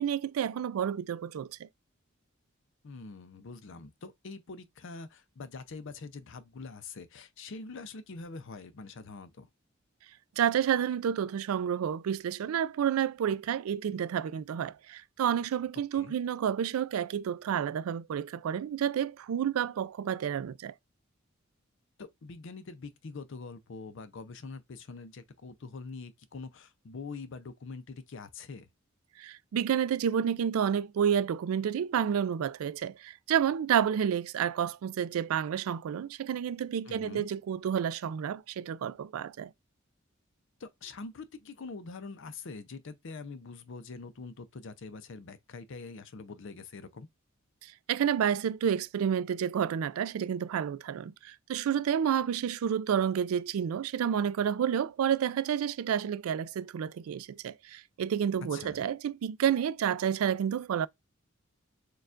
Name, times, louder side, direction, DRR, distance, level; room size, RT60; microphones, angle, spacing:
voice 1, 0.0-1.7 10.4-20.7 29.2-39.5 47.9-60.9, right 8 dB, 85° right, 0.3 m, -30 dB
voice 2, 2.8-9.5 15.9-16.1 22.0-28.7 36.9-37.3 40.6-47.1 58.4-58.9, left 4 dB, 60° left, 0.5 m, -44 dB
6.5 x 2.3 x 2.4 m
head